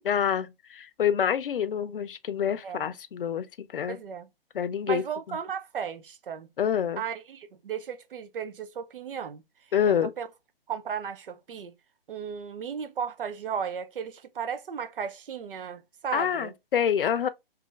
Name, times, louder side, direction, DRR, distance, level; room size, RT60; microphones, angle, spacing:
voice 1, 0.1-4.0 4.5-5.4 6.6-7.0 9.7-10.1 16.1-17.3, left 8 dB, 65° left, 0.6 m, -27 dB
voice 2, 3.9-4.3 4.9-6.5 7.0-9.4 9.8-10.3 10.7-11.7 12.1-16.5, right 7 dB, 65° right, 0.7 m, -35 dB
2.8 x 2.4 x 3.8 m
hypercardioid pair, 155°, 30 cm